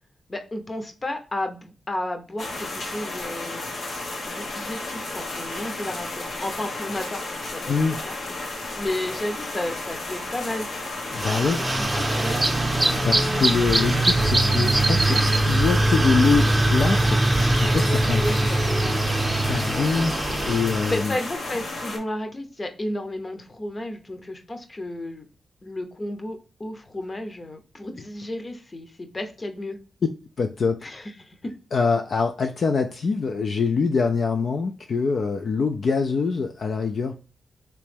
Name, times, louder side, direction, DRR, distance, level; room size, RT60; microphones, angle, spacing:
voice 1, 0.3-3.7 4.3-7.2 7.5-8.2 8.8-10.7 11.6-12.4 18.2-19.0 20.8-25.2 25.6-29.8 30.8-31.4, left 1 dB, 35° left, 6 dB, 0.7 m, -32 dB
sound 1, 2.4-22.0, left 2 dB, 85° left, 1.1 m, -33 dB
voice 2, 7.7-8.0 11.1-11.6 13.0-18.6 19.5-21.2 30.4-30.9 31.7-37.2, left 4 dB, 65° left, 4 dB, 0.3 m, -24 dB
sound 2, 11.2-21.0, right 1 dB, 25° right, 0.6 m, -22 dB
3.3 x 3.0 x 3.3 m, 0.36 s
cardioid pair, 65°, 0 cm